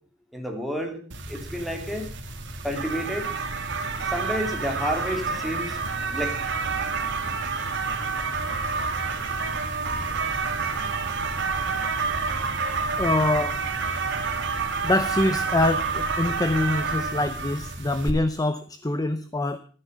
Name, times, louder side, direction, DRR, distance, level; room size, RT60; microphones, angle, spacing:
voice 1, 0.3-1.0 1.3-2.1 2.6-3.4 4.0-5.8 6.0-6.4, equal, ahead, 1 dB, 3.0 m, -30 dB
sound 1, 1.1-18.1, right 4 dB, 60° right, 2.3 m, -28 dB
sound 2, 5.7-11.5, right 1 dB, 60° left, 6.3 m, -51 dB
voice 2, 13.0-13.6 14.8-19.6, left 2 dB, 20° left, 11 dB, 0.7 m, -25 dB
13.5 x 10.0 x 6.6 m, 0.41 s
head